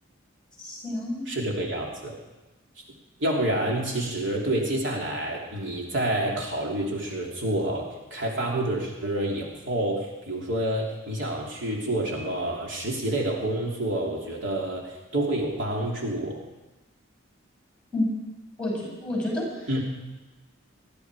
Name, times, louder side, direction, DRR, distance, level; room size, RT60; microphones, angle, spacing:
voice 1, 0.6-1.2 17.9-18.1 18.6-19.7, left 1 dB, 5° left, -4 dB, 6.4 m, -29 dB
voice 2, 1.3-2.2 3.2-16.4 19.7-19.8, right 1 dB, 60° right, -2 dB, 3.1 m, -28 dB
20.5 x 14.0 x 4.8 m, 1.1 s
head